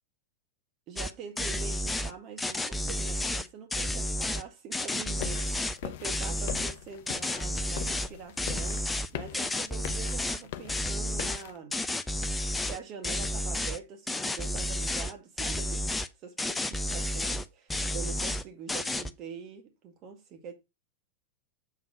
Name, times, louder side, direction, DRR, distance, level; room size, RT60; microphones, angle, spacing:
voice 1, 0.9-8.8 9.1-11.7 12.2-12.3 12.6-20.5, right 6 dB, 35° right, 1.8 m, -44 dB
sound 1, 1.0-1.1 1.4-2.1 2.4-4.4 4.7-5.8 6.0-6.7 7.1-8.1 8.4-10.4 10.7-11.4 11.7-12.8 13.0-13.8 14.1-15.1 15.4-16.1 16.4-17.4 17.7-18.4 18.7-19.1, left 1 dB, 10° left, 0.6 m, -31 dB
sound 2, 5.2-11.6, left 11 dB, 50° left, 0.5 m, -42 dB
7.3 x 3.9 x 5.0 m
figure-of-eight pair, 90°, 0 cm